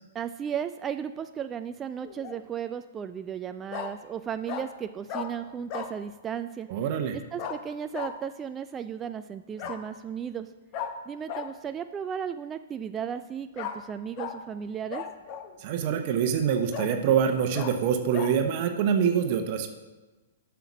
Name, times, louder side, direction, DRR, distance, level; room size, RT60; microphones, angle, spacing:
voice 1, 0.1-6.7 7.1-10.5 11.1-15.0, right 8 dB, 20° right, 9 dB, 0.3 m, -35 dB
Bark, 2.0-2.4 3.7-3.9 4.5-4.7 5.1-5.3 5.7-5.9 7.4-7.6 7.9-8.1 9.6-9.8 10.7-10.9 11.3-11.5 13.6-13.8 14.2-14.3 14.9-15.5 16.1-16.2 16.7-16.9 17.5-17.7 18.1-18.3, left 8 dB, 40° left, 0.9 m, -35 dB
voice 2, 6.7-7.2 15.6-19.7, right 7 dB, 45° right, 6 dB, 0.9 m, -25 dB
7.8 x 5.8 x 6.2 m, 1.2 s
hypercardioid pair, 125°, 0 cm